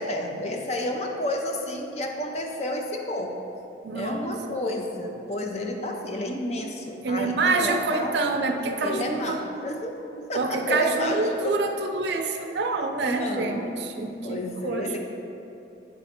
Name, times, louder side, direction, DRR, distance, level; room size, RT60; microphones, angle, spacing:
voice 1, 0.0-3.4 3.9-8.2 8.8-11.6 13.1-13.8 14.2-15.0, left 1 dB, 35° left, 2 dB, 0.5 m, -30 dB
voice 2, 3.8-4.6 7.0-9.4 10.3-15.0, right 3 dB, 65° right, 4 dB, 0.5 m, -27 dB
7.9 x 3.1 x 4.3 m, 2.8 s
head